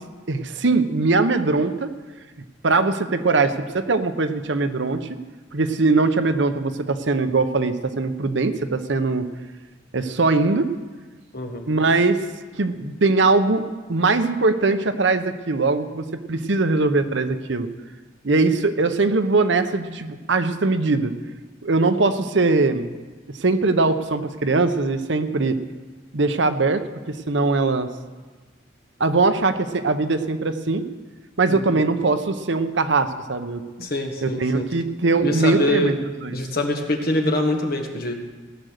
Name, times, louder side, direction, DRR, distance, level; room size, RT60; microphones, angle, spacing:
voice 1, 0.3-1.9 2.6-5.1 5.5-9.3 9.9-10.7 11.7-12.2 12.5-13.6 13.9-17.7 18.2-21.1 21.6-23.0 23.4-25.6 26.1-27.9 29.0-30.8 31.4-33.6 34.2-35.9 36.2-36.4, right 3 dB, 70° right, 9 dB, 0.8 m, -21 dB
voice 2, 11.3-11.7 31.5-31.6 33.8-34.7 35.2-35.9 36.3-38.1, left 1 dB, 50° left, 3 dB, 1.6 m, -24 dB
17.0 x 7.9 x 6.6 m, 1.3 s
head